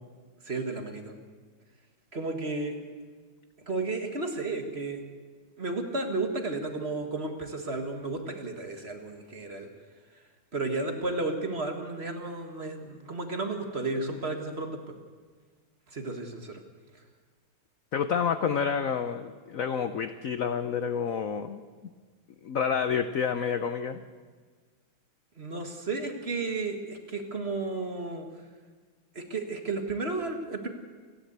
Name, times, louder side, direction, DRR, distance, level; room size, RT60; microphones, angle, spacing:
voice 1, 0.4-1.2 2.1-2.8 3.7-5.0 5.6-9.7 10.5-14.8 15.9-16.6 25.4-28.3 29.2-30.7, right 3 dB, 30° right, 5 dB, 1.8 m, -33 dB
voice 2, 17.9-21.6 22.4-24.0, left 7 dB, 65° left, 10 dB, 0.8 m, -29 dB
28.0 x 11.5 x 8.1 m, 1.5 s
omnidirectional pair, 2.3 m